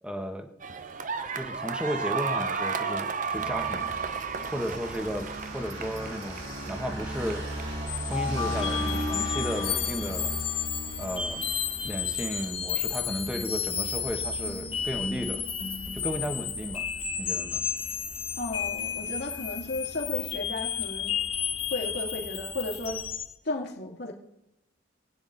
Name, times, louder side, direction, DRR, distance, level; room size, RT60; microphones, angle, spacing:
voice 1, 0.0-0.5 1.3-4.0 4.5-7.4 8.1-10.3 11.0-11.4 11.8-15.5 15.9-16.9 17.2-17.6, equal, 5° right, 5 dB, 1.3 m, -34 dB
sound 1, 0.6-10.4, right 5 dB, 40° right, 0.7 m, -35 dB
sound 2, 3.3-23.1, right 1 dB, 85° right, 6.8 m, -39 dB
sound 3, 7.9-23.3, left 8 dB, 30° left, 1.1 m, -32 dB
voice 2, 18.4-21.1 21.7-23.0 23.4-24.1, left 2 dB, 55° left, 0 dB, 2.7 m, -34 dB
27.0 x 9.5 x 4.0 m, 0.86 s
head